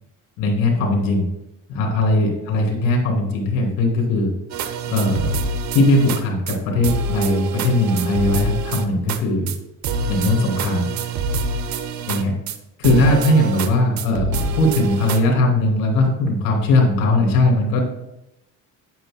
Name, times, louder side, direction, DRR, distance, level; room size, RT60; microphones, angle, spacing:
voice 1, 0.4-1.3 1.7-4.3 4.9-5.3 5.7-9.5 10.1-10.9 12.1-12.3 12.8-17.8, left 2 dB, 85° left, 1 dB, 3.0 m, -19 dB
sound 1, 4.5-6.2 6.5-6.6 6.8-9.2 9.5-9.6 9.8-12.6 12.8-13.7 14.0-15.2, right 4 dB, 60° right, 0.9 m, -26 dB
10.5 x 9.0 x 2.2 m, 0.86 s
cardioid pair, 135°, 33 cm